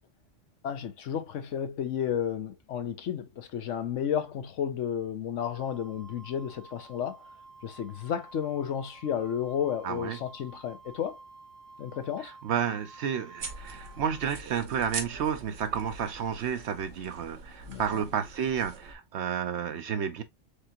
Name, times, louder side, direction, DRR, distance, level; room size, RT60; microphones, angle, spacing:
voice 1, 0.6-7.2 7.6-11.2 11.8-12.3 17.7-18.1, left 8 dB, 75° left, 1.1 m, -32 dB
Wind instrument woodwind instrument, 5.4-14.4, right 3 dB, ahead, 0.5 m, -51 dB
voice 2, 9.8-10.2 12.2-20.2, right 8 dB, 70° right, 0.9 m, -31 dB
sound 1, 13.4-18.9, right 4 dB, 85° right, 1.4 m, -43 dB
4.8 x 3.3 x 2.8 m
omnidirectional pair, 1.3 m